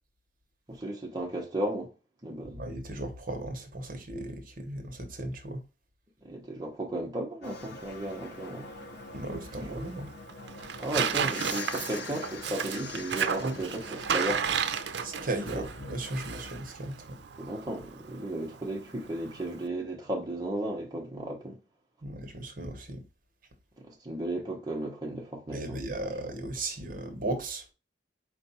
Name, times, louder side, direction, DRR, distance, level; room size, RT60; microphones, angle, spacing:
voice 1, 0.7-1.9 2.2-2.6 6.2-8.7 10.8-14.5 15.5-15.6 17.4-21.6 23.8-25.8, right 1 dB, 20° right, 0.9 m, -34 dB
voice 2, 2.4-5.6 9.1-10.1 15.0-17.2 22.0-23.0 25.5-27.6, right 2 dB, 50° right, 1.0 m, -36 dB
sound 1, 7.4-16.6, left 4 dB, 65° left, 0.7 m, -44 dB
Tearing, 7.4-19.7, right 7 dB, 75° right, 0.5 m, -34 dB
4.5 x 2.6 x 4.1 m
head